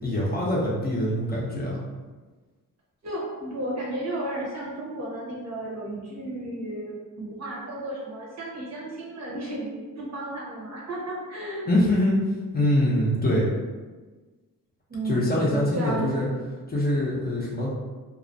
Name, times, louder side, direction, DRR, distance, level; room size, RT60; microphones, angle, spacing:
voice 1, 0.0-1.8 11.7-12.2 12.5-13.5 15.0-16.3 16.7-17.7, left 1 dB, 30° left, -5 dB, 0.6 m, -24 dB
voice 2, 3.0-11.7 14.9-16.2, right 1 dB, 50° right, -4 dB, 0.8 m, -33 dB
2.3 x 2.1 x 2.6 m, 1.3 s
cardioid pair, 90°, 34 cm